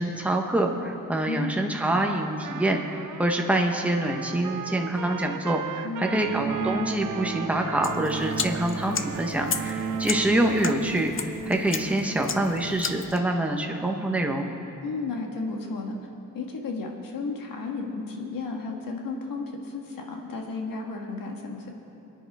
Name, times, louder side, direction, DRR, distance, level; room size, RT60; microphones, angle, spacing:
voice 1, 0.0-11.1 11.5-14.4, right 1 dB, 5° right, 2 dB, 1.1 m, -26 dB
Trumpet, 1.9-10.4, right 9 dB, 70° right, 0.5 m, -38 dB
voice 2, 5.8-6.2 14.8-16.0 16.3-21.7, left 3 dB, 85° left, 2 dB, 1.6 m, -33 dB
sound 1, 6.2-12.7, right 4 dB, 45° right, 1.3 m, -34 dB
sound 2, 7.8-13.2, left 6 dB, 40° left, 0.6 m, -35 dB
23.5 x 10.0 x 3.5 m, 2.9 s
cardioid pair, 105°, 33 cm